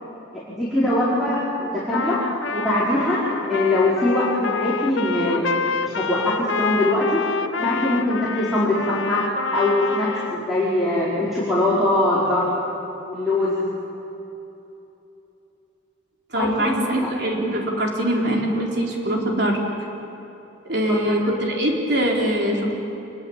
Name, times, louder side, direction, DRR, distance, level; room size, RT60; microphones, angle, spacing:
voice 1, 0.3-2.2 2.5-5.5 5.7-7.2 7.6-9.2 9.5-12.5 13.0-13.5 16.3-16.7 20.9-21.2, left 1 dB, ahead, -10 dB, 4.9 m, -22 dB
Trumpet, 1.9-10.4, left 5 dB, 75° left, 0.9 m, -28 dB
voice 2, 16.3-19.6 20.6-22.7, right 1 dB, 55° right, -1 dB, 4.1 m, -23 dB
27.0 x 22.0 x 8.7 m, 3.0 s
head